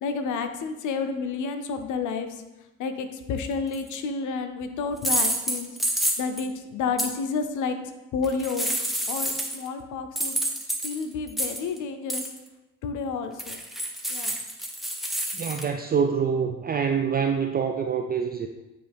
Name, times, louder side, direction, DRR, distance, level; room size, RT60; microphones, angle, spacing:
voice 1, 0.0-2.4 2.8-7.8 8.1-8.7 9.1-10.4 10.8-12.2 12.8-13.6 14.1-14.4, left 5 dB, 80° left, 8 dB, 0.7 m, -30 dB
sound 1, 3.7-4.0 5.0-6.5 7.0-7.1 8.2-9.7 10.2-11.8 12.1-12.4 13.4-15.6, right 1 dB, ahead, 0.8 m, -28 dB
voice 2, 15.3-18.5, right 6 dB, 30° right, 4 dB, 0.4 m, -25 dB
9.3 x 3.2 x 3.4 m, 1.0 s
cardioid pair, 90°, 30 cm